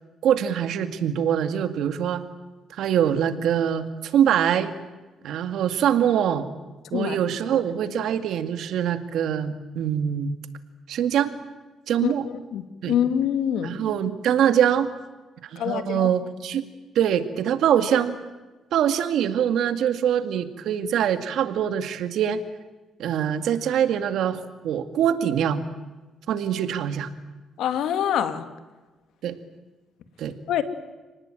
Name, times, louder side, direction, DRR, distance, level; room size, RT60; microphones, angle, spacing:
voice 1, 0.2-2.2 2.7-4.7 5.2-6.5 6.9-10.3 10.9-11.3 11.9-12.2 12.8-12.9 13.6-14.9 15.5-16.7 17.0-18.2 18.7-22.4 23.0-25.6 26.3-27.1 29.2-29.3 30.2-30.3, right 9 dB, 75° right, 9 dB, 2.1 m, -23 dB
voice 2, 12.5-13.7 15.6-16.1 27.6-28.5 30.5-30.6, left 9 dB, 80° left, 10 dB, 2.2 m, -25 dB
29.5 x 19.0 x 9.2 m, 1.2 s
cardioid pair, 90°, 0 cm